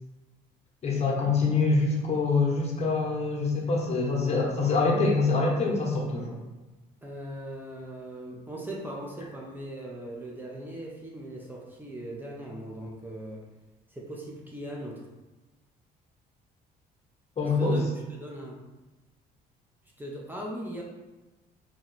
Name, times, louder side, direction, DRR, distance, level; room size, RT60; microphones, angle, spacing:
voice 1, 0.8-6.4 17.4-17.8, left 3 dB, 40° left, -1 dB, 0.9 m, -25 dB
voice 2, 7.0-13.4 13.9-15.0 17.4-17.8 18.1-18.6 20.0-20.8, right 1 dB, 10° right, -2 dB, 0.6 m, -39 dB
3.0 x 2.7 x 4.0 m, 1.1 s
cardioid pair, 110°, 17 cm